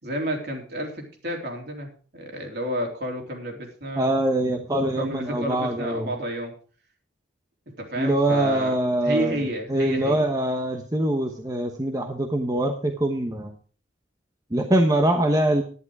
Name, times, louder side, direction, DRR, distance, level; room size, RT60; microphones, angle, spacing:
voice 1, 0.0-4.1 4.5-4.6 5.0-6.5 7.8-10.2, equal, 60° right, 1 dB, 3.5 m, -30 dB
voice 2, 4.0-6.1 8.0-9.4 9.7-13.5 14.5-15.6, right 1 dB, 20° right, 3 dB, 1.1 m, -23 dB
11.0 x 11.0 x 4.8 m, 0.41 s
head